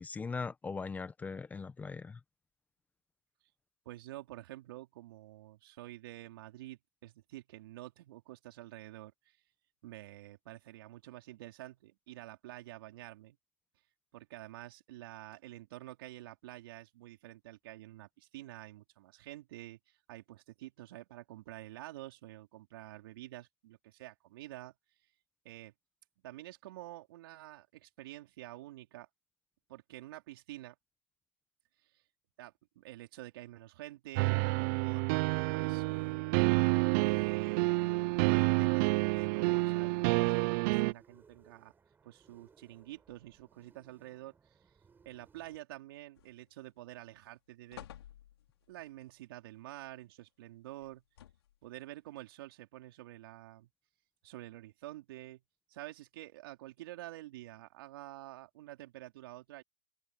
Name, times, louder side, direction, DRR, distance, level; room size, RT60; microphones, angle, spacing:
voice 1, 0.0-2.2, left 4 dB, 10° left, 1.1 m, -40 dB
voice 2, 3.9-9.4 9.8-13.4 14.1-24.7 25.4-25.7 26.2-29.1 29.7-30.7 31.8-31.9 32.4-35.1 35.5-36.4 37.0-37.7 38.0-41.7 42.0-44.6 45.0-47.9 48.7-51.0 51.6-53.7 54.2-55.4 55.7-59.6, right 16 dB, 60° right, 4.1 m, -49 dB
sound 1, 34.2-40.9, right 27 dB, 45° right, 0.5 m, -29 dB
sound 2, 35.5-45.6, right 5 dB, 15° right, 7.1 m, -65 dB
sound 3, 46.2-46.7 47.1-47.2 47.7-48.7 50.8-51.7 52.4-52.5, left 11 dB, 75° left, 4.9 m, -53 dB
hypercardioid pair, 125°, 13 cm